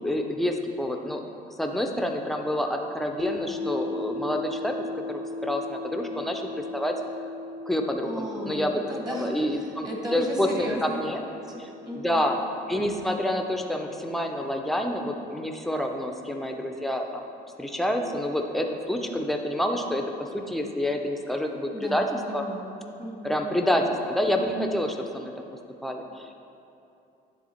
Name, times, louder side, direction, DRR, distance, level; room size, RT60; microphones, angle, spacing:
voice 1, 0.0-1.2 1.6-4.7 5.1-6.4 6.7-6.9 7.7-8.8 9.1-11.2 11.6-11.7 11.9-12.4 12.7-17.2 17.6-20.0 20.3-22.5 23.2-25.3 25.8-26.3, left 1 dB, ahead, 3 dB, 0.5 m, -28 dB
sound 1, 3.2-15.3, left 2 dB, 45° right, 1.1 m, -38 dB
voice 2, 8.0-11.6 11.8-12.3 21.7-23.5, equal, 25° right, -1 dB, 1.1 m, -35 dB
10.0 x 3.5 x 4.3 m, 2.8 s
cardioid pair, 110°, 17 cm